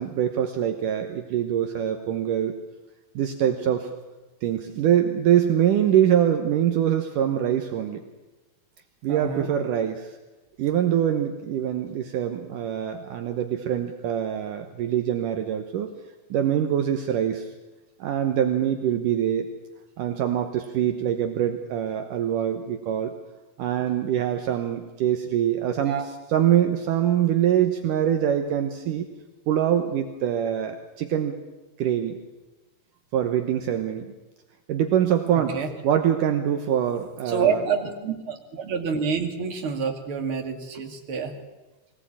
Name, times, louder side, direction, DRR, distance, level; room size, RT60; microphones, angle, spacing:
voice 1, 0.0-2.5 3.2-3.9 4.4-8.0 9.0-10.1 10.6-15.9 16.3-17.5 18.0-19.5 20.0-23.1 23.6-29.1 29.5-31.4 31.8-32.2 33.1-34.1 34.7-37.6, right 10 dB, 70° right, 6 dB, 2.6 m, -24 dB
voice 2, 9.1-9.5 25.8-26.1 35.5-35.7 37.3-41.3, right 6 dB, 40° right, 4 dB, 2.9 m, -27 dB
23.0 x 18.0 x 8.8 m, 1.2 s
omnidirectional pair, 4.1 m